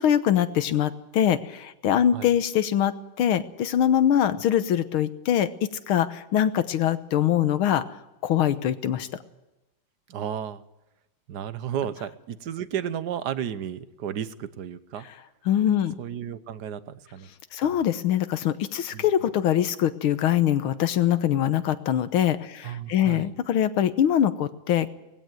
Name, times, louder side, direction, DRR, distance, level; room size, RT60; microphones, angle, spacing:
voice 1, 0.0-7.8 8.2-9.1 15.5-16.0 17.5-24.9, left 10 dB, 90° left, 12 dB, 1.9 m, -23 dB
voice 2, 10.1-10.6 11.3-15.1 16.0-17.3 18.9-19.1 22.6-23.3, right 9 dB, 60° right, 14 dB, 1.4 m, -33 dB
19.5 x 16.0 x 9.1 m, 0.97 s
omnidirectional pair, 2.3 m